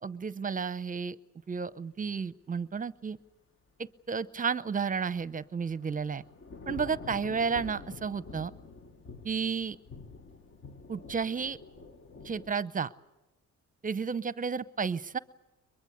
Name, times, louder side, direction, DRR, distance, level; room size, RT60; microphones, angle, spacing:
voice 1, 0.0-1.2 1.5-3.2 4.1-6.2 6.7-8.5 9.2-9.8 10.9-11.6 12.2-12.9 13.8-15.2, right 5 dB, 25° right, 17 dB, 0.8 m, -32 dB
Thunder / Rain, 5.2-12.6, left 3 dB, 45° left, 1.4 m, -47 dB
22.5 x 22.5 x 8.4 m, 0.96 s
cardioid pair, 90°, 30 cm